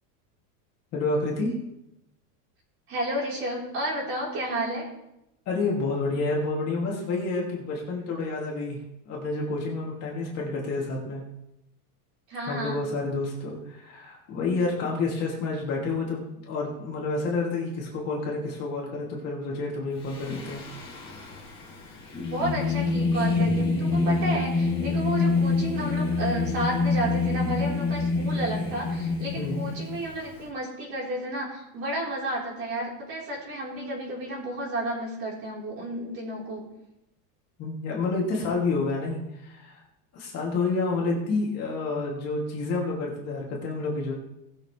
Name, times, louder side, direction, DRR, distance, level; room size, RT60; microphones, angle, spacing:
voice 1, 0.9-1.6 5.5-8.8 9.1-11.2 12.5-20.6 23.7-24.0 29.3-29.6 37.6-39.8 40.1-44.1, left 3 dB, 30° left, -3 dB, 2.7 m, -29 dB
voice 2, 2.9-4.9 12.3-12.8 22.3-36.6, right 1 dB, 30° right, -4 dB, 4.3 m, -32 dB
Singing, 20.0-30.4, left 3 dB, 10° left, 3.6 m, -27 dB
20.0 x 7.2 x 3.4 m, 0.86 s
supercardioid pair, 175°, 47 cm